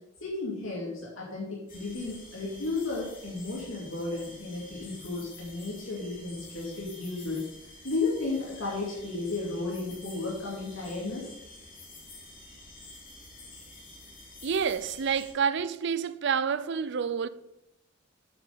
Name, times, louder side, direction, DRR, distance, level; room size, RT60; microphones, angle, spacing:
voice 1, 0.2-11.3, left 3 dB, 90° left, 2.5 m, -34 dB
sound 1, 1.7-15.3, left 2 dB, 45° left, 2.6 m, -49 dB
voice 2, 14.4-17.3, right 6 dB, 60° right, 0.5 m, -28 dB
8.5 x 6.4 x 5.3 m
head